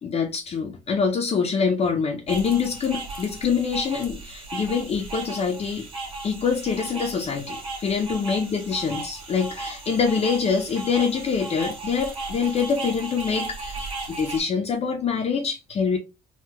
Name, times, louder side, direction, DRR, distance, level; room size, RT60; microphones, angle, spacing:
voice 1, 0.0-5.9 6.2-16.0, left 6 dB, 35° left, 0.5 m, -25 dB
sound 1, 2.3-14.4, right 3 dB, 30° right, 1.4 m, -36 dB
3.7 x 2.2 x 2.9 m
cardioid pair, 110°, 17 cm